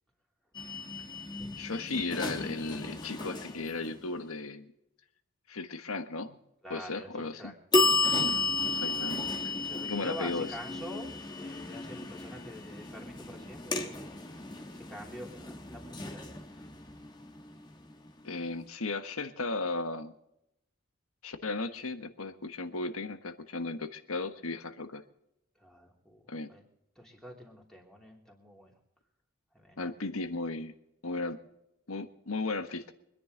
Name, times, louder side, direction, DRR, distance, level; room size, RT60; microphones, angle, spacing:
sound 1, 0.5-4.3 7.7-18.4, left 3 dB, 20° left, 1.2 m, -33 dB
voice 1, 1.6-4.7 5.5-6.4 6.7-7.5 8.1-8.4 8.7-9.5 9.8-10.5 18.2-20.1 21.2-25.0 26.3-26.5 29.8-30.7 31.0-31.4 31.9-32.9, left 3 dB, 90° left, 9 dB, 1.4 m, -35 dB
voice 2, 6.6-7.5 8.0-8.4 9.5-11.1 11.4-17.0 25.5-26.2 26.5-26.6 26.9-28.8 29.5-29.9, equal, 5° left, -1 dB, 3.1 m, -47 dB
25.0 x 10.5 x 3.9 m, 0.82 s
head